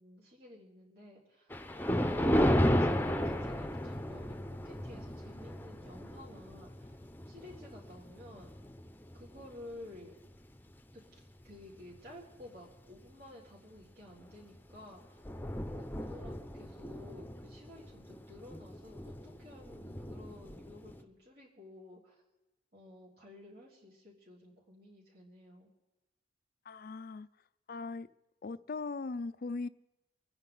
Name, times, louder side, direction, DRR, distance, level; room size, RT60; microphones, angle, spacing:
voice 1, 0.0-1.5 2.0-7.0 7.3-8.5 9.1-10.1 10.9-15.2 15.6-22.2 22.7-25.7, left 1 dB, 60° right, -5 dB, 3.9 m, -53 dB
Thunder, 1.5-10.0 10.6-10.8 11.5-11.6 12.0-12.1 14.2-14.4 14.8-14.9 15.0-21.0, equal, 10° left, 0.8 m, -34 dB
voice 2, 26.7-27.3 27.7-28.1 28.4-29.7, left 3 dB, 55° left, 16 dB, 0.5 m, -39 dB
26.0 x 9.9 x 4.0 m, 1.0 s
head